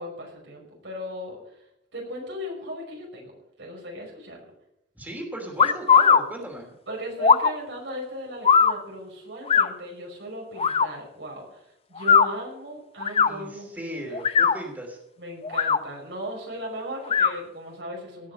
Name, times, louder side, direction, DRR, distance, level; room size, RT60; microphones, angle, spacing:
voice 1, 0.0-1.4 1.9-3.3 3.6-4.4 6.9-11.6 11.9-14.2 15.2-18.3, equal, 80° right, -1 dB, 5.9 m, -37 dB
voice 2, 4.9-6.7 13.2-15.0, right 1 dB, 10° right, 0 dB, 3.0 m, -37 dB
sound 1, 5.6-6.2 7.2-7.5 8.4-8.7 9.5-9.7 10.6-10.9 12.0-12.3 13.0-13.3 14.1-14.6 15.4-15.8 17.1-17.3, left 6 dB, 35° left, 0.6 m, -18 dB
18.0 x 6.5 x 8.0 m, 0.80 s
head